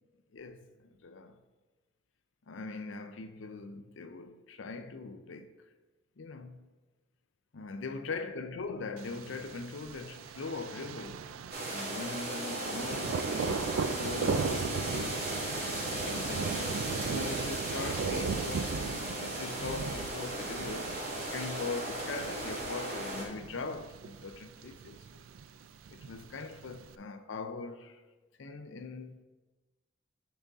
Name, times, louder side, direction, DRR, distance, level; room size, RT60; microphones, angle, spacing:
voice 1, 0.3-1.4 2.5-5.6 6.2-6.7 7.5-11.3 11.6-15.2 16.0-25.2 25.9-28.0 28.4-29.2, left 4 dB, 70° left, 0.5 m, -41 dB
Thunder, 9.0-26.9, right 5 dB, 85° right, 0.4 m, -38 dB
sound 1, 11.5-23.2, right 1 dB, 50° right, 2.0 m, -36 dB
10.0 x 4.0 x 3.6 m
head